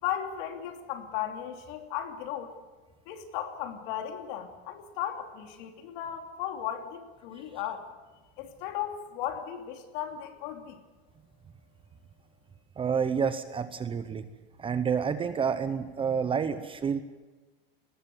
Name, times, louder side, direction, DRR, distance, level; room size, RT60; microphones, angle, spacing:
voice 1, 0.0-2.5 3.1-7.8 8.4-10.8, left 10 dB, 55° left, 5 dB, 3.0 m, -36 dB
voice 2, 12.8-14.3 14.6-17.0, right 6 dB, 20° right, 12 dB, 0.9 m, -29 dB
19.5 x 15.0 x 9.5 m, 1.2 s
supercardioid pair, 135°, 30 cm